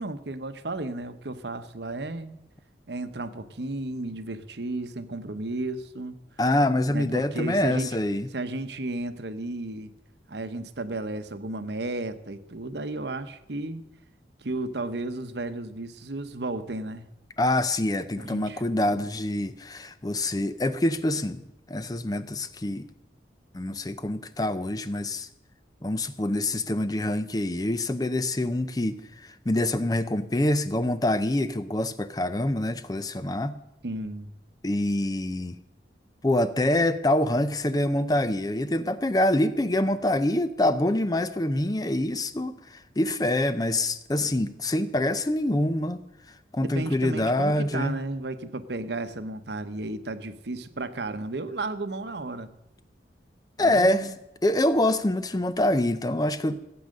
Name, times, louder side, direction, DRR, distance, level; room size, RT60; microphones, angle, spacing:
voice 1, 0.0-2.3 2.9-6.2 6.9-8.0 8.3-9.9 10.3-13.8 14.4-17.1 18.2-19.0 33.8-34.3 46.6-52.5 53.6-54.1, right 2 dB, 70° right, 10 dB, 0.9 m, -33 dB
voice 2, 6.4-8.3 17.4-21.4 21.7-22.9 23.5-25.3 25.8-33.6 34.6-35.6 36.2-46.0 46.5-48.0 53.6-54.1 54.4-56.6, left 1 dB, 20° left, 12 dB, 0.5 m, -25 dB
15.5 x 8.8 x 6.5 m, 0.87 s
head